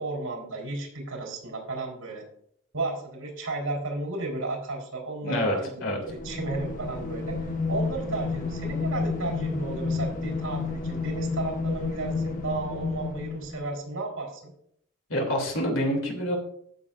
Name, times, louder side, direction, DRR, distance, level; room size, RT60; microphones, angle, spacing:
voice 1, 0.0-2.2 2.7-5.7 6.0-7.4 7.7-14.5, right 2 dB, 75° right, 1 dB, 4.4 m, -33 dB
voice 2, 5.2-6.0 15.1-16.4, equal, 65° left, 1 dB, 3.0 m, -27 dB
sound 1, 6.0-13.7, left 4 dB, 40° left, 1.1 m, -31 dB
15.5 x 7.0 x 2.6 m, 0.70 s
head